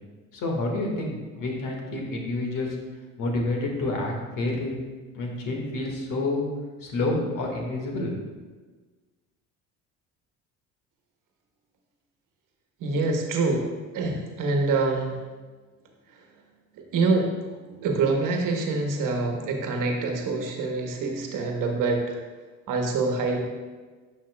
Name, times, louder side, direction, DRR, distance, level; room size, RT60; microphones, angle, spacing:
voice 1, 0.3-2.7 3.2-4.7 5.1-6.5 6.8-8.1, left 2 dB, 55° left, 0 dB, 1.8 m, -28 dB
voice 2, 12.8-13.6 13.9-15.1 16.1-16.2 16.7-17.3 17.8-22.2 22.7-23.4, right 3 dB, 55° right, 2 dB, 1.2 m, -25 dB
10.5 x 5.8 x 2.3 m, 1.3 s
hypercardioid pair, 60°, 38 cm